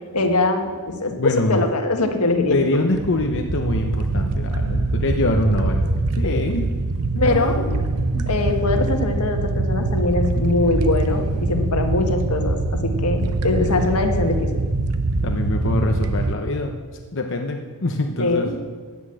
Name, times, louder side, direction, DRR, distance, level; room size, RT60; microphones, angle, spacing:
voice 1, 0.1-2.6 6.2-6.4 7.2-7.6 8.3-14.5 18.2-18.6, left 2 dB, 80° left, 4 dB, 1.5 m, -22 dB
voice 2, 1.1-1.6 2.5-5.8 6.2-6.7 7.1-8.3 15.2-16.7 17.1-18.5, left 2 dB, 60° left, 3 dB, 0.9 m, -24 dB
sound 1, 2.9-16.4, right 2 dB, 85° right, 0.7 m, -23 dB
10.5 x 9.7 x 7.9 m, 1.5 s
head